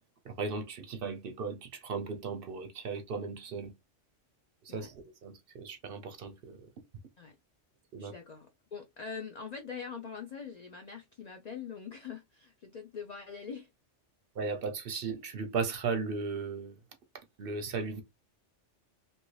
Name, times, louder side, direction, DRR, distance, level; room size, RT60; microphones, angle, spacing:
voice 1, 0.2-3.7 4.6-6.6 7.9-8.1 14.3-16.8 17.1-18.0, right 4 dB, 60° right, 0.7 m, -36 dB
voice 2, 8.0-13.7, left 6 dB, 70° left, 0.4 m, -43 dB
2.8 x 2.6 x 3.0 m
omnidirectional pair, 1.3 m